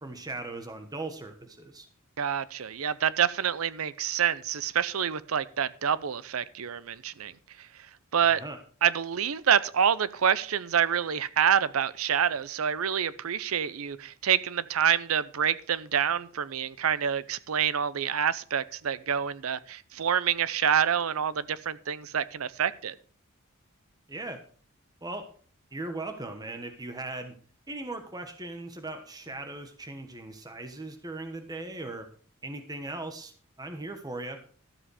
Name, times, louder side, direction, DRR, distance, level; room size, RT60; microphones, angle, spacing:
voice 1, 0.0-1.9 8.2-8.6 24.1-24.4 25.0-25.3 25.7-27.3 27.7-32.1 32.4-33.3 33.6-34.4, right 2 dB, 20° right, 1.2 m, -38 dB
voice 2, 2.2-7.3 7.6-7.7 8.1-8.4 8.8-23.0, right 8 dB, 80° right, 0.6 m, -27 dB
13.0 x 7.4 x 4.9 m
head